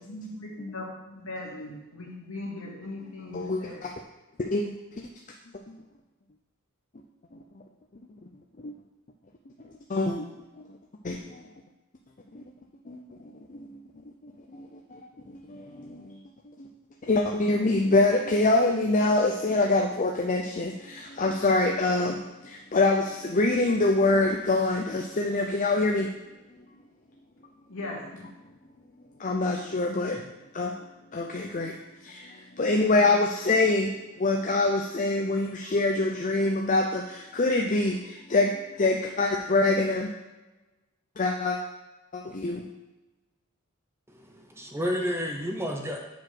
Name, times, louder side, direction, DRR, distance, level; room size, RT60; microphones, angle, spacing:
voice 1, 0.0-3.8 27.7-28.0, left 2 dB, 65° left, -3 dB, 2.3 m, -39 dB
voice 2, 3.3-3.9 4.4-5.1 8.6-8.7 9.9-10.3 11.0-11.4 12.3-12.4 12.9-13.8 14.2-15.0 15.3-16.2 16.6-16.7 17.1-26.1 29.2-30.2 30.5-30.7 31.1-31.7 32.0-40.1 41.2-41.6 42.1-42.7, left 2 dB, 35° left, 1 dB, 0.6 m, -25 dB
voice 3, 44.1-46.0, equal, 10° right, 2 dB, 0.7 m, -31 dB
7.1 x 4.9 x 6.1 m, 1.1 s
head